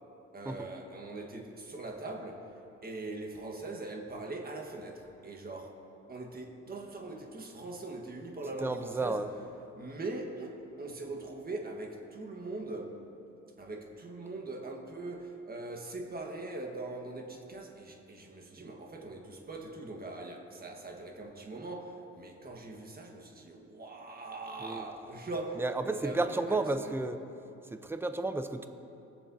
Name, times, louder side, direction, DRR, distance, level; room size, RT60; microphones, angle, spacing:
voice 1, 0.3-2.6 2.8-5.8 6.1-9.2 9.8-13.0 13.6-27.0, right 2 dB, 30° right, 2 dB, 1.4 m, -41 dB
voice 2, 8.6-9.3 24.6-24.8 25.6-27.2 27.7-28.7, right 2 dB, 10° right, 8 dB, 0.6 m, -32 dB
21.0 x 7.2 x 2.7 m, 2.8 s
cardioid pair, 90°, 30 cm